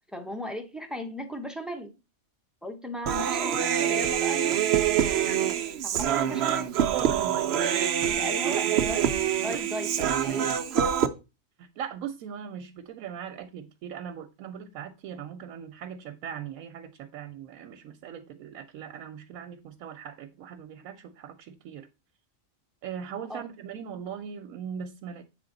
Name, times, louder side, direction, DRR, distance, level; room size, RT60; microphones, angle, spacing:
voice 1, 0.1-1.9 2.6-4.7 5.8-6.7 8.1-9.1 9.4-11.0 23.3-23.5, equal, ahead, 0.6 m, -37 dB
Human voice, 3.0-11.1, right 9 dB, 60° right, 0.7 m, -25 dB
voice 2, 6.9-7.7 8.2-8.9 9.5-9.7 11.6-21.9 22.8-25.2, right 8 dB, 90° right, 1.1 m, -40 dB
7.6 x 3.5 x 3.8 m
omnidirectional pair, 1.4 m